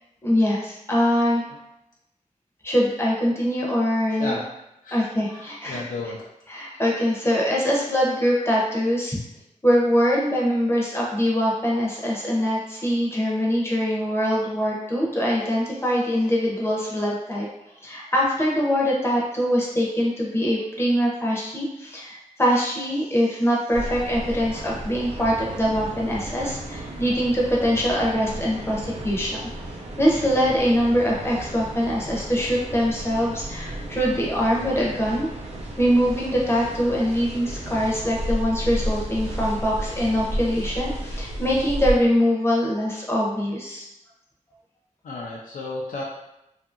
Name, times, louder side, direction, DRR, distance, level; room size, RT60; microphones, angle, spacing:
voice 1, 0.2-1.4 2.6-4.4 4.9-5.8 6.5-9.2 9.6-17.5 17.8-29.5 30.0-35.3 35.8-43.9, equal, 20° left, -4 dB, 0.6 m, -23 dB
voice 2, 5.3-6.2 45.0-46.0, left 2 dB, 85° left, -3 dB, 0.4 m, -33 dB
sound 1, 23.7-42.0, right 1 dB, 50° right, 0.6 m, -33 dB
2.7 x 2.5 x 2.4 m, 0.86 s
wide cardioid pair, 125°, 14 cm